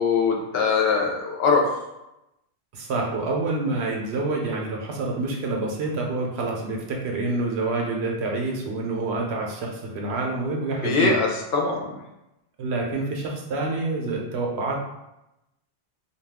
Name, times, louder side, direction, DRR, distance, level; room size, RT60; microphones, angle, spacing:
voice 1, 0.0-1.6 10.8-11.9, left 4 dB, 70° left, 0 dB, 0.8 m, -22 dB
voice 2, 2.7-11.1 12.6-14.8, right 3 dB, 75° right, 0 dB, 0.9 m, -27 dB
2.3 x 2.3 x 3.4 m, 0.90 s
omnidirectional pair, 1.1 m